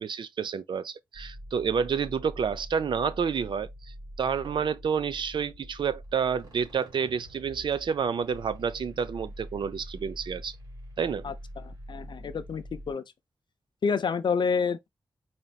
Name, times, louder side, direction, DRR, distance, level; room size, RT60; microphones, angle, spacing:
voice 1, 0.0-3.7 4.2-10.6 11.0-11.3, right 6 dB, 80° right, 0.5 m, -29 dB
sound 1, 1.1-12.9, equal, 55° right, 2.9 m, -45 dB
voice 2, 11.2-13.0 13.8-14.9, left 5 dB, 70° left, 0.6 m, -29 dB
4.3 x 3.9 x 2.3 m
wide cardioid pair, 130°, 8 cm